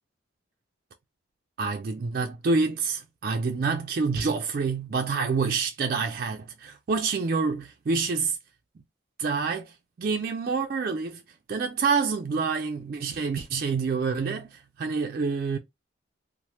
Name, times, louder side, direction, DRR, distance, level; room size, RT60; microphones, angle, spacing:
voice 1, 1.6-8.4 9.2-11.2 11.5-15.6, right 4 dB, 45° right, 0.3 m, -27 dB
3.1 x 2.0 x 2.7 m
head